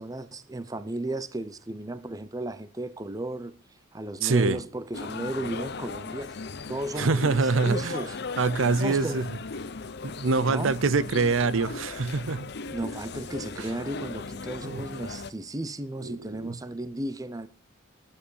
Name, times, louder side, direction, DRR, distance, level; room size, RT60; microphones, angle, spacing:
voice 1, 0.0-3.5 3.9-6.4 6.7-8.2 8.8-9.3 10.5-10.7 12.7-17.5, right 1 dB, 15° right, 0.6 m, -34 dB
voice 2, 4.2-4.6 7.0-8.0 8.4-9.3 10.0-12.5 13.6-13.7 14.6-14.8 16.0-16.5, right 4 dB, 70° right, 0.7 m, -25 dB
sound 1, 4.9-15.3, left 4 dB, 55° left, 0.7 m, -37 dB
11.5 x 8.6 x 6.5 m
head